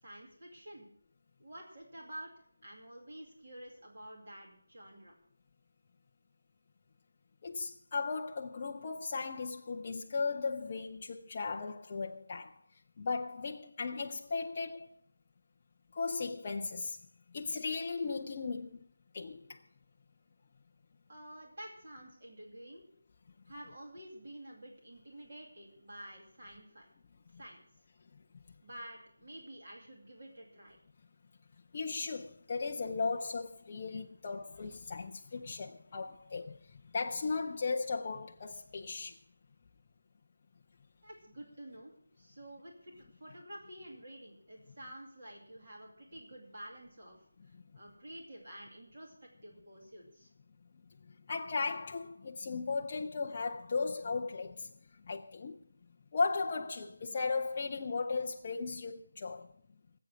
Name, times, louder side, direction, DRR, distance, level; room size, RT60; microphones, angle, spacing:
voice 1, 0.0-0.9 1.4-2.3 2.6-5.1 21.1-22.8 23.5-26.9 27.3-27.7 28.6-30.8 41.0-47.2 47.7-50.3, right 1 dB, 25° right, 2.4 m, -50 dB
voice 2, 7.4-12.6 13.0-14.9 15.9-17.0 17.3-18.9 19.1-19.6 28.1-28.2 31.7-39.2 47.5-47.6 51.0-55.6 56.1-59.5, left 4 dB, 20° left, 0.4 m, -36 dB
17.0 x 7.8 x 6.2 m
figure-of-eight pair, 180°, 0 cm